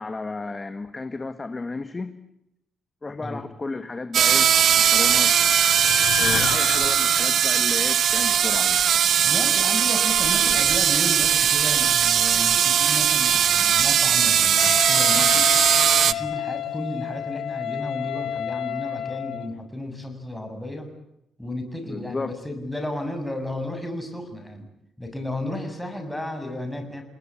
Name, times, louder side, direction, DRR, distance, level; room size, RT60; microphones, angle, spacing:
voice 1, 0.0-2.2 3.0-4.5 4.8-5.3 6.2-8.8 21.9-22.3, left 3 dB, 20° left, 10 dB, 1.6 m, -33 dB
sound 1, 4.1-16.1, right 9 dB, 55° right, 1.1 m, -19 dB
sound 2, 4.6-8.8, left 11 dB, 90° left, 1.7 m, -33 dB
voice 2, 9.2-15.5 16.0-20.9 21.4-24.7 25.0-27.0, left 1 dB, 5° left, 5 dB, 6.9 m, -33 dB
Wind instrument woodwind instrument, 14.6-19.6, left 11 dB, 70° left, 1.6 m, -30 dB
29.0 x 20.0 x 8.6 m, 0.81 s
cardioid pair, 140°, 0 cm